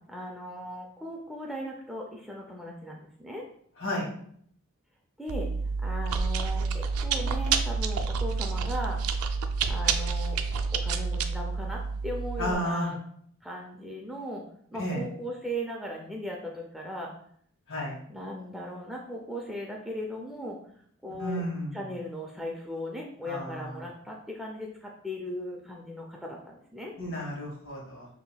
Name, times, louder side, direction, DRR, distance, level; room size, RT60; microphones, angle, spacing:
voice 1, 0.1-3.4 5.2-5.5 5.8-9.0 9.7-10.4 10.7-13.0 13.4-14.4 14.7-17.1 18.1-20.6 21.0-21.4 21.7-26.9, equal, ahead, -1 dB, 0.4 m, -37 dB
Chewing mastication, 5.3-12.5, right 5 dB, 85° right, 0.4 m, -29 dB
voice 2, 12.4-12.9 14.8-15.0 17.7-17.9 21.2-21.8 23.2-23.7 27.0-28.1, equal, 65° left, -3 dB, 1.5 m, -32 dB
5.5 x 2.9 x 2.3 m, 0.65 s
head